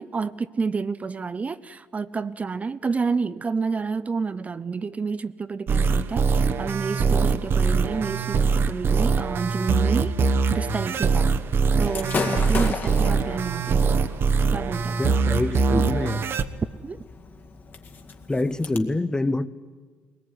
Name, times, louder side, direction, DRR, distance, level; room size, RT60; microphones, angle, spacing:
voice 1, 0.0-11.3 11.8-13.8 14.5-15.2 16.8-17.0, right 4 dB, 30° right, 0.7 m, -29 dB
sound 1, 5.7-16.4, right 5 dB, 50° right, 1.1 m, -22 dB
Gunshot gunfire / Fireworks, 11.8-18.8, left 4 dB, 40° left, 2.1 m, -35 dB
voice 2, 15.0-16.3 18.3-19.5, left 2 dB, 15° left, 0.8 m, -26 dB
21.0 x 19.5 x 9.6 m
supercardioid pair, 85°, 5 cm